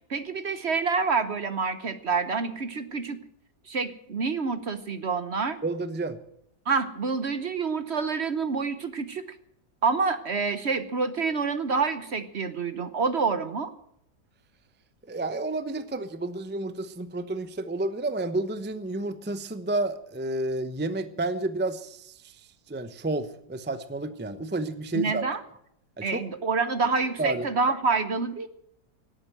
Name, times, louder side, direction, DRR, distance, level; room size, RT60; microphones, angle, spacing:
voice 1, 0.1-3.2 3.7-5.6 6.7-9.3 9.8-13.7 24.9-25.4 26.0-28.5, right 4 dB, 45° right, 12 dB, 1.0 m, -27 dB
voice 2, 5.6-6.2 15.1-22.4 22.7-25.3 26.0-26.2 27.2-27.5, right 2 dB, 10° right, 11 dB, 0.6 m, -30 dB
18.0 x 9.0 x 7.6 m, 0.74 s
omnidirectional pair, 1.8 m